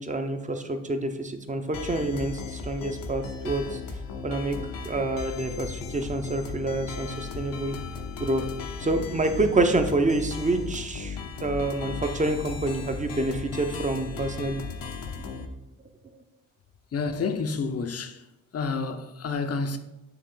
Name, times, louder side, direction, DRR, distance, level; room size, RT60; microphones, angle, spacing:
voice 1, 0.0-3.8 4.2-4.6 4.8-7.8 8.2-8.4 8.8-14.6 15.3-15.4, right 2 dB, 20° right, 0.8 m, -27 dB
sound 1, 1.7-15.5, left 5 dB, 70° left, 0.9 m, -36 dB
voice 2, 16.9-18.2 18.5-19.8, left 4 dB, 45° left, 0.7 m, -29 dB
9.0 x 3.2 x 3.8 m
supercardioid pair, 60°, 35 cm